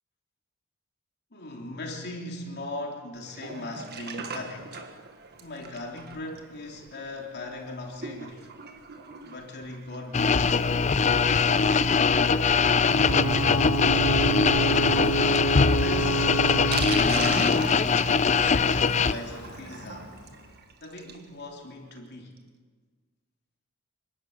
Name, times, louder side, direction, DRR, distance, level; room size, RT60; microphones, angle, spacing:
voice 1, 1.3-4.9 5.3-8.5 9.2-10.6 11.1-13.5 14.6-15.2 15.6-18.3 18.5-20.2 20.8-22.3, left 2 dB, 50° left, 0 dB, 3.4 m, -39 dB
Sink (filling or washing), 3.2-21.3 21.6-21.7 21.9-22.0 22.4-22.5, right 4 dB, 50° right, 1.6 m, -41 dB
sound 1, 10.1-19.1, left 5 dB, 35° left, 0.5 m, -22 dB
Ocean / Boat Water vehicle / Alarm, 12.8-20.4, right 2 dB, 85° left, 2.5 m, -30 dB
27.0 x 12.0 x 8.0 m, 1.5 s
head